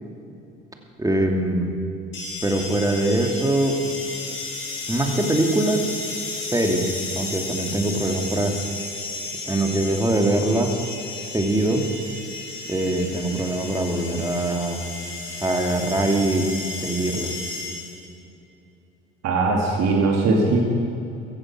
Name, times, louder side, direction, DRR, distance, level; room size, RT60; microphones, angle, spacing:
voice 1, 1.0-1.7 2.4-3.8 4.9-5.9 6.5-8.6 9.5-10.8 11.3-11.9 12.7-14.8 15.4-16.5 16.8-17.3, right 1 dB, 10° right, 3 dB, 2.7 m, -22 dB
sound 1, 2.1-18.1, left 3 dB, 40° left, 5.0 m, -33 dB
voice 2, 19.2-20.6, right 3 dB, 60° right, 0 dB, 2.5 m, -20 dB
15.0 x 15.0 x 6.2 m, 2.8 s
hypercardioid pair, 60°, 29 cm